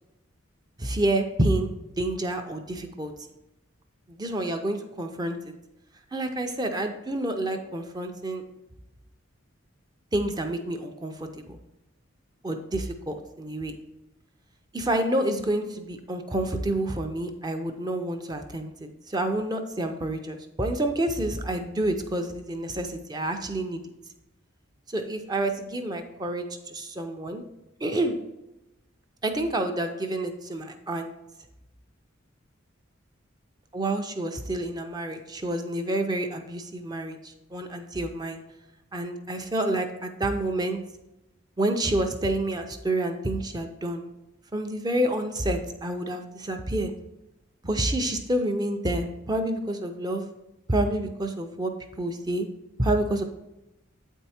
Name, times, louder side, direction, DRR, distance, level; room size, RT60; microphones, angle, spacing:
voice 1, 0.8-3.1 4.1-5.5 6.1-8.4 10.1-11.6 12.4-13.7 14.7-23.8 24.9-27.4 27.8-28.2 29.2-31.1 33.7-38.4 38.9-40.8 41.6-44.1 44.5-46.9 47.6-50.3 50.7-51.7 52.0-52.5 52.8-53.2, right 1 dB, 20° right, 5 dB, 0.5 m, -28 dB
8.2 x 4.5 x 4.2 m, 0.96 s
head